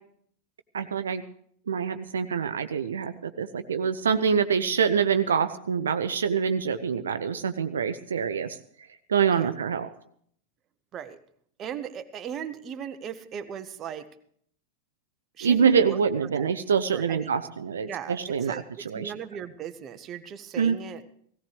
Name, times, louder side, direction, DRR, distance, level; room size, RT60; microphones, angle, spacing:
voice 1, 0.7-1.2 1.7-8.6 9.1-9.9 15.4-19.1 20.6-20.8, right 6 dB, 70° right, 9 dB, 0.6 m, -25 dB
voice 2, 11.6-14.1 15.4-16.0 16.3-16.5 16.9-17.3 17.9-18.6 18.9-21.0, right 8 dB, 30° right, 9 dB, 1.1 m, -37 dB
17.0 x 17.0 x 3.4 m, 0.64 s
figure-of-eight pair, 90°, 0 cm